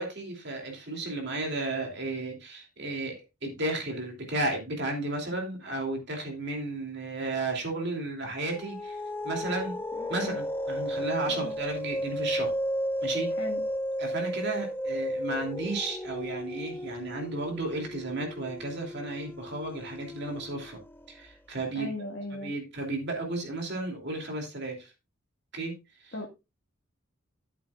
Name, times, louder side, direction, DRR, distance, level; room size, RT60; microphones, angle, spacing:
voice 1, 0.0-9.8 10.1-12.5 13.0-13.5 14.0-20.8 21.1-21.9 22.3-24.9 25.5-26.2, right 2 dB, 50° right, 2 dB, 2.8 m, -33 dB
sound 1, 8.4-21.2, equal, 10° left, 0.4 m, -34 dB
voice 2, 10.0-10.4 11.3-11.5 13.4-13.6 21.7-22.5 26.1-26.3, left 1 dB, 45° left, -1 dB, 1.6 m, -38 dB
12.5 x 8.7 x 2.4 m, 0.25 s
head